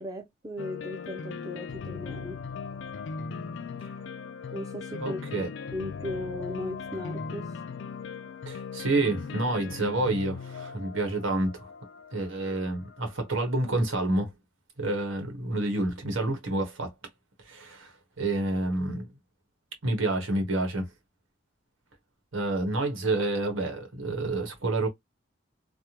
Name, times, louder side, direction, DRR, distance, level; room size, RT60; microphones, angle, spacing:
voice 1, 0.0-2.4 4.5-5.2 5.7-7.5, left 1 dB, 20° right, 0.5 m, -37 dB
sound 1, 0.6-13.5, left 5 dB, 65° left, 0.4 m, -39 dB
voice 2, 5.0-5.5 8.4-11.7 12.1-14.3 14.8-16.9 17.5-19.1 19.8-20.9 22.3-24.9, right 2 dB, 85° right, 1.3 m, -28 dB
3.4 x 2.1 x 2.9 m
head